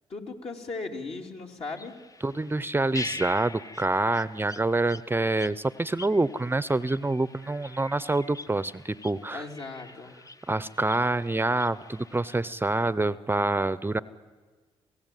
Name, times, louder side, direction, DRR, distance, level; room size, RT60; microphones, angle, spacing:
voice 1, 0.1-2.0 9.3-10.2, left 3 dB, 55° left, 1 dB, 3.1 m, -37 dB
sound 1, 1.6-12.4, left 2 dB, 30° left, 0.8 m, -44 dB
voice 2, 2.2-9.5 10.5-14.0, right 2 dB, 15° right, 17 dB, 0.7 m, -26 dB
26.5 x 16.0 x 9.2 m, 1.4 s
supercardioid pair, 55°, 12 cm